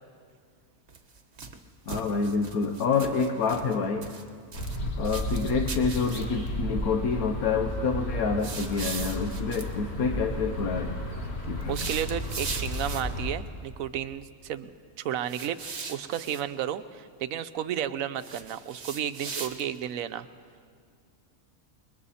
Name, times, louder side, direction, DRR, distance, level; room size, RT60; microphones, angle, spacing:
sound 1, 0.9-1.6 1.9-3.8 4.0-4.8 5.0-6.5 8.4-9.7 11.6-13.2 15.3-16.4 18.2-19.8, right 4 dB, 50° right, 1.5 m, -39 dB
voice 1, 1.9-4.1 5.0-11.0 11.5-11.9, left 5 dB, 90° left, 5 dB, 1.4 m, -27 dB
sound 2, 4.5-13.3, equal, 50° left, 2.0 m, -33 dB
voice 2, 11.7-14.7 15.0-15.6 15.9-20.3, right 10 dB, 75° right, 12 dB, 1.1 m, -32 dB
28.5 x 21.5 x 4.2 m, 2.1 s
omnidirectional pair, 1.5 m